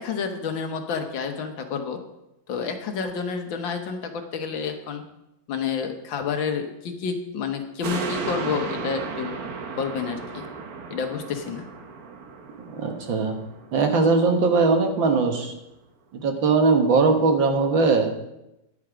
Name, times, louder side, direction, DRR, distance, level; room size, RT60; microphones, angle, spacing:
voice 1, 0.0-2.0 2.5-5.0 5.5-9.4 9.8-10.5 10.9-11.7, left 6 dB, 85° left, 6 dB, 1.9 m, -29 dB
sound 1, 7.8-14.5 14.9-15.0, right 5 dB, 55° right, 1.4 m, -35 dB
voice 2, 12.7-13.4 13.7-15.5 16.1-18.1, right 4 dB, 85° right, 4 dB, 2.0 m, -20 dB
10.5 x 8.6 x 5.0 m, 0.90 s
omnidirectional pair, 2.0 m